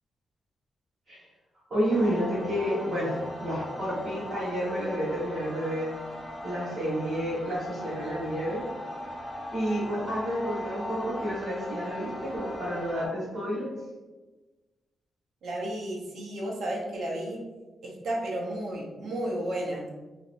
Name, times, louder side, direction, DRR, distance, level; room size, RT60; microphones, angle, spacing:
voice 1, 1.7-5.9 6.4-8.6 9.5-13.7, equal, 35° right, -14 dB, 1.5 m, -30 dB
sound 1, 1.9-13.1, left 1 dB, 30° left, 0.6 m, -39 dB
voice 2, 15.4-17.4 17.8-19.8, right 1 dB, 70° right, -2 dB, 0.8 m, -32 dB
2.9 x 2.9 x 2.6 m, 1.2 s
wide cardioid pair, 155°, 0 cm